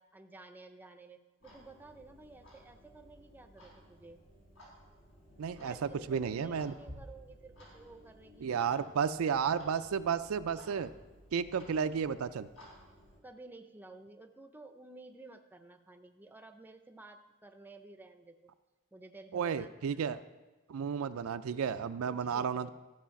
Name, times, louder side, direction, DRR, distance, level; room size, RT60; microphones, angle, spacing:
voice 1, 0.0-4.2 5.6-8.6 11.8-12.0 13.2-18.5 18.9-19.7 22.1-22.7, right 2 dB, 10° right, 7 dB, 0.5 m, -53 dB
Clock, 1.4-13.2, equal, 75° left, 4.0 m, -56 dB
voice 2, 5.4-6.7 8.4-10.9 11.3-12.5 19.3-20.2 20.7-22.7, right 7 dB, 85° right, 11 dB, 0.4 m, -32 dB
14.0 x 4.9 x 5.8 m, 1.2 s
head